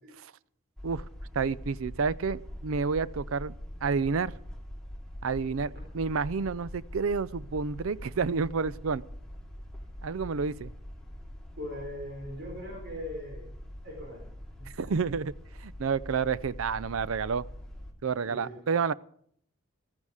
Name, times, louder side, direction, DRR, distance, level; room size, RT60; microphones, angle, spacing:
sound 1, 0.8-17.9, equal, 5° left, 2.3 m, -43 dB
voice 1, 1.3-3.5 3.8-4.3 5.2-9.0 10.0-10.7 14.8-15.3 15.6-17.4 18.0-18.9, right 5 dB, 75° right, 0.5 m, -29 dB
voice 2, 11.6-13.4 13.8-14.2 14.6-14.9 18.3-18.5, left 1 dB, 50° right, 4.4 m, -40 dB
15.0 x 13.5 x 4.9 m
head